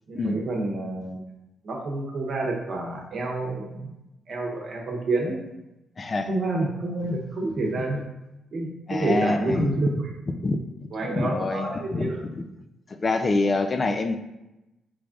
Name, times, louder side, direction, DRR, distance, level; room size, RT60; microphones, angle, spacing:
voice 1, 0.1-1.2 1.6-4.0 4.3-5.4 6.3-8.0 8.5-10.1 10.9-12.2, right 2 dB, 60° right, -1 dB, 0.9 m, -28 dB
voice 2, 6.0-6.3 8.9-9.7 10.3-10.6 11.0-12.4 12.9-14.2, left 3 dB, 40° left, 8 dB, 0.3 m, -26 dB
3.2 x 2.4 x 3.7 m, 0.95 s
cardioid pair, 70°, 0 cm